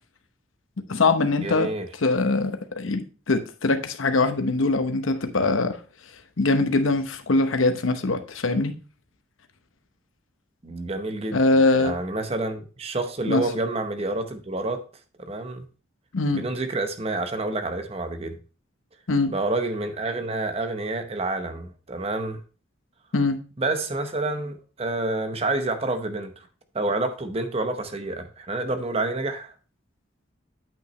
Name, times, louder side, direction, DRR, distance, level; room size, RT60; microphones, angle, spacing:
voice 1, 0.9-1.7 2.0-5.8 6.4-8.7 11.3-11.9 13.2-13.4 16.1-16.4 19.1-19.3 23.1-23.4, left 3 dB, 85° left, 0.9 m, -22 dB
voice 2, 1.4-1.9 10.6-11.4 11.8-14.8 15.2-15.6 16.3-18.4 19.3-22.4 23.6-26.5 26.7-29.5, right 2 dB, 30° right, 0.8 m, -28 dB
8.7 x 5.7 x 3.1 m
head